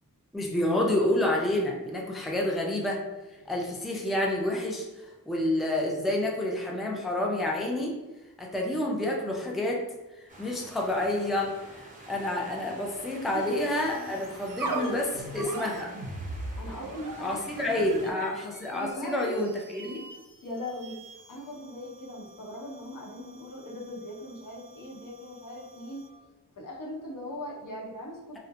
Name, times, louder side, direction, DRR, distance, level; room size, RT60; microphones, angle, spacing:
voice 1, 0.3-3.0 3.5-7.9 8.4-9.8 10.2-15.9 17.2-20.0, left 1 dB, ahead, -1 dB, 0.4 m, -29 dB
sound 1, 10.3-18.1, right 1 dB, 20° right, 0.7 m, -48 dB
sound 2, 13.7-26.2, right 2 dB, 65° right, 0.5 m, -41 dB
voice 2, 16.6-18.4 18.7-19.5 20.4-20.9 21.3-26.0 26.6-28.4, left 1 dB, 65° left, -2 dB, 0.8 m, -39 dB
2.6 x 2.1 x 2.5 m, 1.1 s
cardioid pair, 55°, 35 cm